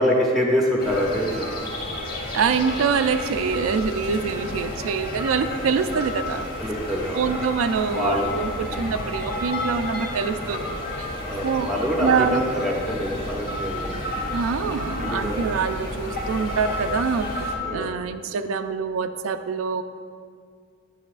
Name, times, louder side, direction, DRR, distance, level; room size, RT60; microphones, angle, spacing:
voice 1, 0.0-1.5 6.6-7.3 8.0-8.3 11.2-14.2 15.0-15.6 17.6-18.0, equal, ahead, -2 dB, 0.6 m, -25 dB
sound 1, 0.8-17.6, left 1 dB, 50° left, 0.9 m, -31 dB
voice 2, 2.3-6.5 7.1-11.1 11.4-12.4 14.3-17.3 17.7-19.8, right 5 dB, 90° right, 9 dB, 0.3 m, -25 dB
9.3 x 6.2 x 2.4 m, 2.1 s
head